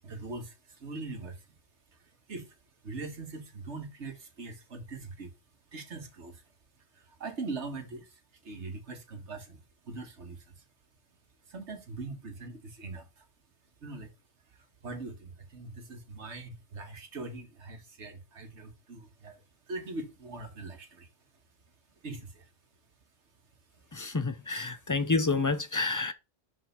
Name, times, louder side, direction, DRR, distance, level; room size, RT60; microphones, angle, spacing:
voice 1, 0.0-1.6 1.9-2.6 2.8-5.3 5.7-6.5 6.8-10.6 11.5-13.3 13.8-14.1 14.5-21.1 22.0-22.5 23.7-23.9, right 3 dB, 85° right, 1.9 m, -42 dB
voice 2, 23.9-26.1, left 3 dB, 25° left, 0.4 m, -29 dB
6.3 x 4.5 x 5.6 m
omnidirectional pair, 1.1 m